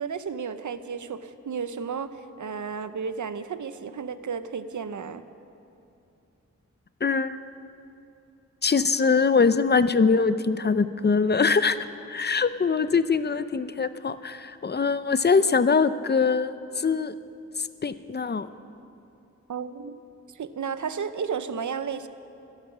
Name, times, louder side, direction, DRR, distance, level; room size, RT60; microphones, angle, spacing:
voice 1, 0.0-5.2 19.5-20.0 20.3-22.1, right 6 dB, 85° right, 12 dB, 0.7 m, -33 dB
voice 2, 7.0-7.4 8.6-17.1 17.6-18.5, left 5 dB, 35° left, 13 dB, 0.5 m, -23 dB
24.0 x 8.9 x 6.1 m, 2.7 s
wide cardioid pair, 100°, 29 cm